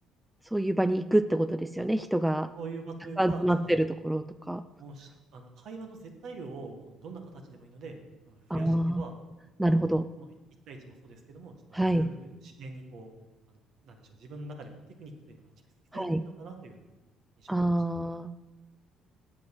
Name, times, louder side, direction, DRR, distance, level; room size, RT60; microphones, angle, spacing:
voice 1, 0.5-2.5 3.2-4.6 8.5-9.0 9.6-10.1 11.7-12.0 15.9-16.2 17.5-18.3, right 1 dB, 5° right, 11 dB, 0.4 m, -26 dB
voice 2, 2.5-3.9 4.8-8.0 8.3-9.1 9.7-10.3 10.7-13.1 13.5-14.7 15.0-15.4 15.9-16.9 17.4-17.8 18.1-18.2, right 3 dB, 65° right, 4 dB, 1.7 m, -44 dB
7.6 x 7.5 x 7.2 m, 1.1 s
supercardioid pair, 65°, 0 cm